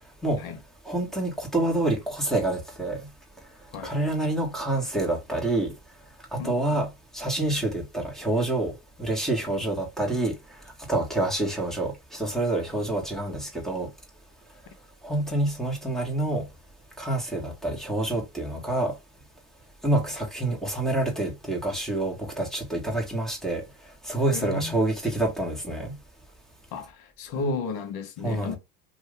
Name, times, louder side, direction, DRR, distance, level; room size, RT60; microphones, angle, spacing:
voice 1, 0.8-3.1 3.8-5.7 6.3-6.9 7.1-8.7 9.0-10.4 10.9-13.9 15.0-16.4 17.0-18.9 19.8-23.6 24.0-25.9 28.2-28.6, right 2 dB, ahead, 1.4 m, -27 dB
voice 2, 6.4-6.8 24.3-24.7 26.7-28.6, left 3 dB, 50° left, 1.0 m, -33 dB
2.7 x 2.6 x 3.3 m
supercardioid pair, 100°, 46 cm